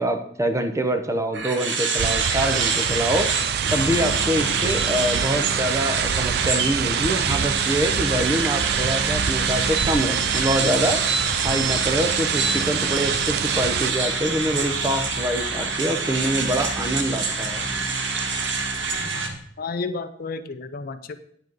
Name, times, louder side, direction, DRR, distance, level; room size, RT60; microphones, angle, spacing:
voice 1, 0.0-17.7, right 1 dB, 15° right, 7 dB, 0.8 m, -25 dB
sound 1, 1.3-19.3, right 4 dB, 85° right, 1.2 m, -26 dB
sound 2, 2.0-13.9, right 9 dB, 60° right, 0.3 m, -26 dB
sound 3, 3.6-19.4, equal, 40° right, 1.5 m, -36 dB
voice 2, 19.6-21.2, left 4 dB, 55° left, 11 dB, 0.5 m, -31 dB
9.0 x 7.9 x 4.0 m, 0.68 s
head